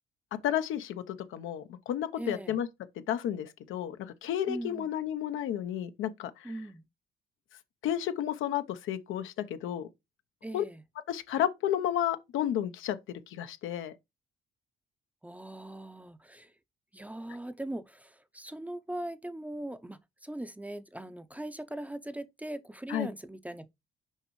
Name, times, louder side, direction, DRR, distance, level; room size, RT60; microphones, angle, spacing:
voice 1, 0.4-2.7 3.0-6.5 7.8-9.9 10.5-10.6 11.1-13.0 13.3-13.9 22.9-23.1, left 10 dB, 85° left, 0.8 m, -32 dB
voice 2, 2.2-2.6 4.5-4.9 6.4-6.9 10.4-10.8 15.2-16.5 16.9-23.7, right 1 dB, 5° right, 0.6 m, -40 dB
6.5 x 5.1 x 3.1 m
cardioid pair, 90°, 20 cm